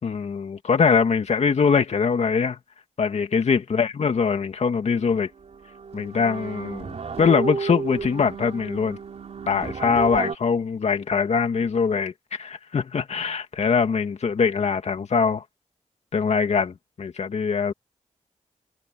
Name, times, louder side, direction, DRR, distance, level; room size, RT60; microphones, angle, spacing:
voice 1, 0.0-2.6 3.0-5.3 5.9-9.0 9.5-15.4 16.1-17.7, left 5 dB, 65° left, 2.3 m, -23 dB
sound 1, 4.9-5.1 5.4-10.4, right 5 dB, 65° right, 3.6 m, -32 dB
cardioid pair, 75°, 12 cm